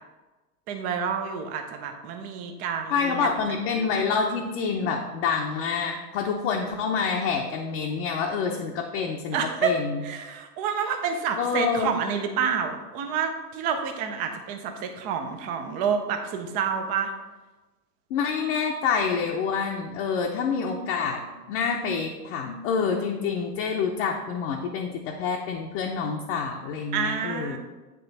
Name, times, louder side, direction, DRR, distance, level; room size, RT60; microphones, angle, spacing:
voice 1, 0.7-3.3 9.3-9.8 10.0-17.1 26.9-27.6, right 6 dB, 20° right, 6 dB, 0.4 m, -28 dB
voice 2, 2.9-10.0 11.4-12.0 18.1-21.2 21.5-27.6, left 5 dB, 40° left, 0 dB, 0.8 m, -27 dB
9.3 x 3.2 x 4.0 m, 1.2 s
hypercardioid pair, 125°, 47 cm